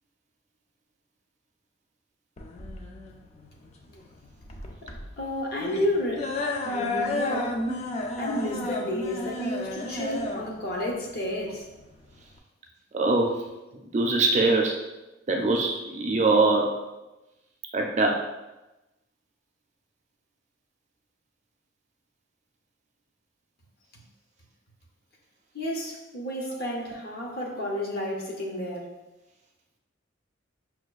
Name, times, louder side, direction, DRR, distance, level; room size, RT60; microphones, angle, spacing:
sound 1, 2.4-12.4, left 2 dB, 35° left, 0.3 m, -33 dB
voice 1, 5.2-6.3 6.6-7.6 8.2-11.7 25.5-28.9, left 1 dB, 55° left, -1 dB, 0.7 m, -31 dB
voice 2, 12.9-13.4 13.9-14.8 15.3-16.7 17.7-18.2, right 3 dB, 35° right, 1 dB, 0.4 m, -22 dB
5.5 x 2.2 x 2.3 m, 1.0 s
head